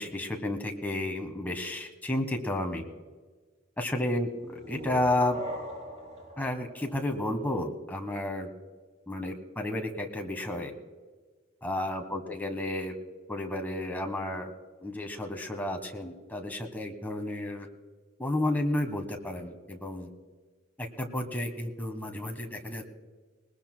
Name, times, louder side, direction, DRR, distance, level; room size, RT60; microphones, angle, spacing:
voice 1, 0.0-2.8 3.8-5.4 6.4-8.5 9.1-10.7 11.6-12.9 13.3-14.5 14.8-17.7 18.2-20.1 20.8-22.9, left 1 dB, 10° left, 3 dB, 1.4 m, -32 dB
sound 1, 4.3-7.9, equal, 35° right, 3.3 m, -42 dB
20.5 x 19.5 x 2.3 m, 1.4 s
head